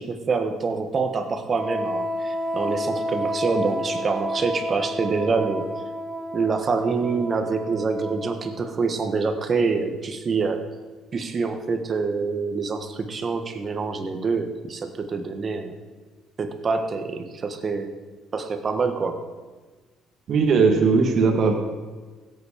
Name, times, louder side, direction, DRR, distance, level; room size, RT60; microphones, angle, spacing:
voice 1, 0.0-5.7 6.3-10.7 11.1-15.8 16.4-17.9 18.3-19.2, right 4 dB, 35° right, 7 dB, 1.4 m, -26 dB
Wind instrument woodwind instrument, 1.5-8.8, equal, 15° right, 1.4 m, -30 dB
voice 2, 20.3-21.5, right 4 dB, 50° right, 3 dB, 1.7 m, -18 dB
16.5 x 8.2 x 5.1 m, 1.3 s
cardioid pair, 120°, 0 cm